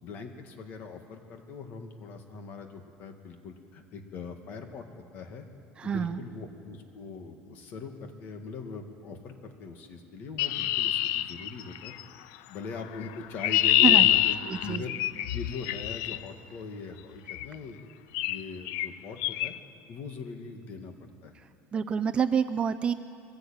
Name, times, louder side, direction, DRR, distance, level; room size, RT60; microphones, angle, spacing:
voice 1, 0.0-4.8 5.1-5.4 5.8-11.9 12.5-17.9 18.3-19.5 19.9-21.3, left 4 dB, 45° left, 5 dB, 2.1 m, -41 dB
voice 2, 5.8-6.2 13.8-14.1 14.5-14.8 21.7-22.9, right 7 dB, 25° right, 11 dB, 0.5 m, -27 dB
Chirp tweet, 10.4-12.0 13.0-16.2 17.3-17.5 18.1-18.4 18.7-18.9 19.2-19.5, left 14 dB, 70° left, 0.5 m, -25 dB
22.5 x 15.5 x 8.9 m, 2.4 s
cardioid pair, 160°, 5 cm